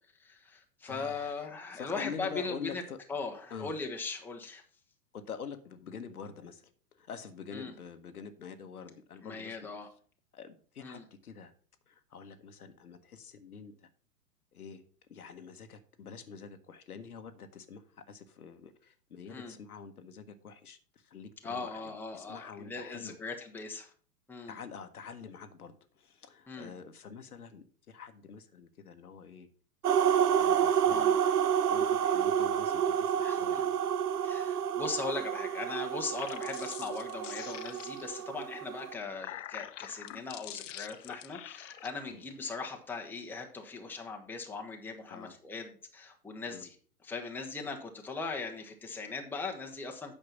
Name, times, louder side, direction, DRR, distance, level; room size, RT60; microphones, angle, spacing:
voice 1, 0.2-2.8 3.1-4.6 7.5-7.7 9.2-9.9 10.8-11.0 19.3-19.5 21.4-23.9 24.3-24.6 26.5-26.7 30.9-31.1 33.2-33.6 34.2-46.7 47.0-50.1, left 4 dB, 5° left, 2 dB, 1.1 m, -39 dB
voice 2, 0.8-1.3 1.7-3.0 3.5-3.7 5.1-9.6 10.3-11.5 11.9-13.9 14.5-14.8 15.1-23.2 24.5-29.5 30.4-31.1 31.7-33.7 42.1-42.2 45.1-45.3 46.5-46.6, left 6 dB, 70° left, 9 dB, 1.2 m, -46 dB
sound 1, 29.8-38.9, right 9 dB, 75° right, 0.6 m, -29 dB
sound 2, 36.0-38.2 38.9-41.9, left 13 dB, 55° left, 0.6 m, -45 dB
8.9 x 5.7 x 5.8 m, 0.43 s
figure-of-eight pair, 105°, 46 cm